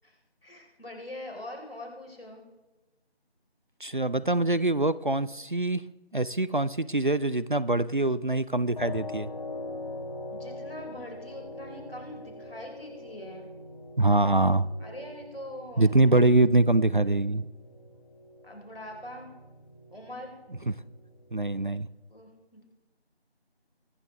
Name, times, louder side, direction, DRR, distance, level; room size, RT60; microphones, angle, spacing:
voice 1, 0.0-2.4 10.3-13.5 14.8-16.2 18.4-19.3 19.9-20.4 21.7-21.8 22.1-22.6, left 1 dB, 60° left, 1 dB, 4.2 m, -43 dB
voice 2, 3.8-5.8 6.1-9.3 14.0-14.7 15.8-17.4 21.3-21.9, right 2 dB, 50° right, 18 dB, 0.4 m, -24 dB
sound 1, 8.8-21.7, left 2 dB, 40° left, 3.1 m, -43 dB
23.0 x 9.7 x 3.4 m, 1.1 s
figure-of-eight pair, 170°, 32 cm